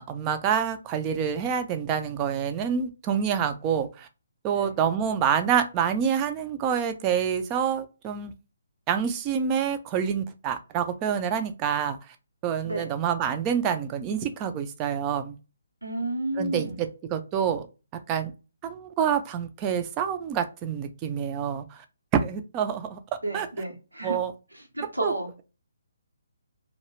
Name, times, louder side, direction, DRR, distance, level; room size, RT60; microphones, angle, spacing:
voice 1, 0.0-4.1 4.4-8.3 8.9-12.0 12.4-15.4 16.4-17.7 18.1-18.3 18.6-21.8 22.1-23.0 23.3-23.5 24.0-24.3 25.0-25.1, right 8 dB, 20° right, 0.3 m, -27 dB
voice 2, 15.8-16.8 23.2-24.2 24.5-25.3, right 1 dB, 90° right, 0.7 m, -31 dB
2.2 x 2.0 x 2.9 m
figure-of-eight pair, 135°, 0 cm